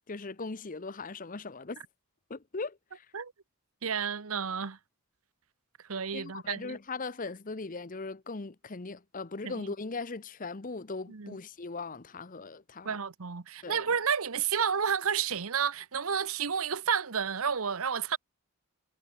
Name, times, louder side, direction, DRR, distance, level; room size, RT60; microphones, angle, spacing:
voice 1, 0.1-1.8 2.3-3.1 6.1-13.0 13.6-13.8, left 3 dB, 35° left, 0.8 m, -39 dB
voice 2, 3.8-4.8 5.9-6.8 9.4-9.7 11.1-11.4 12.8-18.2, right 7 dB, 70° right, 1.0 m, -31 dB
head